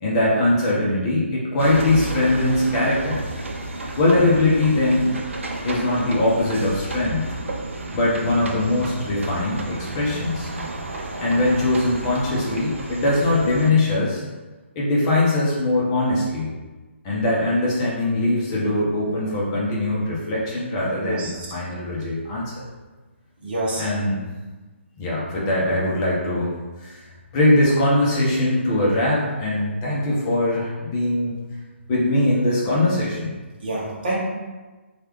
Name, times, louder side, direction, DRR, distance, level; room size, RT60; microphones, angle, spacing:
voice 1, 0.0-3.2 4.0-5.1 5.6-7.3 7.9-10.5 11.2-14.2 14.7-16.5 17.0-22.6 23.8-24.2 25.0-26.5 26.8-27.1 27.3-31.3 31.9-33.3, left 2 dB, 25° left, -6 dB, 0.8 m, -21 dB
sound 1, 1.6-13.7, right 2 dB, 75° right, 0.5 m, -32 dB
voice 2, 20.9-21.5 23.4-23.9 33.6-34.2, right 1 dB, 45° right, -5 dB, 0.8 m, -27 dB
3.2 x 2.4 x 3.0 m, 1.3 s
figure-of-eight pair, 145°, 7 cm